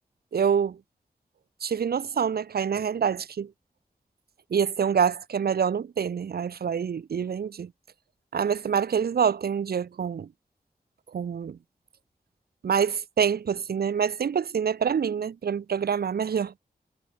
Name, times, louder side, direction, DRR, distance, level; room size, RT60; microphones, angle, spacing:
voice 1, 0.3-0.8 1.6-3.5 4.5-7.7 8.3-10.3 11.1-11.6 12.6-16.5, right 7 dB, 80° right, 0.8 m, -26 dB
wide cardioid pair, 80°, 16 cm